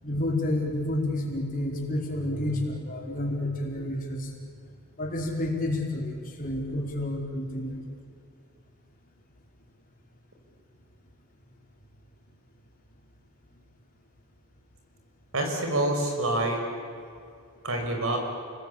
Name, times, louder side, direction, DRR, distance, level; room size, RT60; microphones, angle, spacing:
voice 1, 0.0-4.3 5.0-7.7, left 1 dB, 40° left, -1 dB, 4.8 m, -30 dB
voice 2, 15.3-16.6 17.6-18.2, right 1 dB, 70° right, 3 dB, 5.8 m, -26 dB
29.5 x 20.5 x 8.8 m, 2.4 s
head